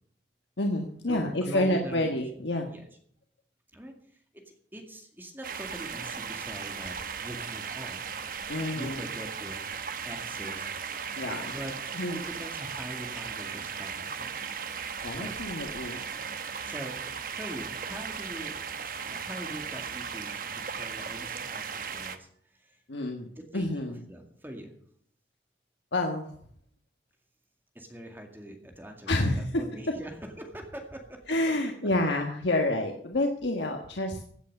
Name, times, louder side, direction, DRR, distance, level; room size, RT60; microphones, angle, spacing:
voice 1, 0.6-2.7 8.5-9.0 11.1-11.5 11.9-12.2 15.0-16.0 22.9-23.3 23.5-24.0 25.9-26.3 29.1-29.5 31.3-34.2, left 1 dB, 85° left, 3 dB, 1.4 m, -28 dB
voice 2, 1.1-2.1 2.7-2.8 3.7-3.9 4.7-6.9 7.2-8.0 8.7-9.6 10.0-10.7 11.1-11.7 12.1-14.5 15.2-15.3 16.6-16.9 17.3-18.6 19.1-22.8 23.3-23.8 24.1-24.7 27.7-31.2 31.6-31.7, right 1 dB, 10° right, 3 dB, 2.0 m, -42 dB
sound 1, 5.4-22.2, right 6 dB, 50° right, 1.0 m, -37 dB
16.0 x 8.4 x 6.6 m, 0.62 s
head